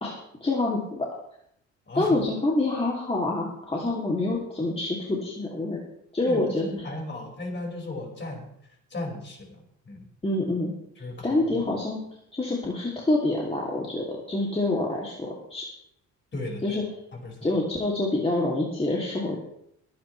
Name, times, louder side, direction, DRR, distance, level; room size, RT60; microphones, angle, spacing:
voice 1, 0.0-1.1 2.0-5.8 6.1-6.9 10.2-10.7 11.2-12.0 12.3-15.7 16.6-16.8 17.4-19.4, left 2 dB, 20° left, -3 dB, 2.8 m, -26 dB
voice 2, 1.9-2.3 6.3-8.5 8.9-10.1 11.0-11.6 16.3-16.8 17.1-17.5, left 2 dB, 35° left, 0 dB, 5.4 m, -36 dB
23.0 x 9.8 x 3.3 m, 0.73 s
cardioid pair, 90°, 30 cm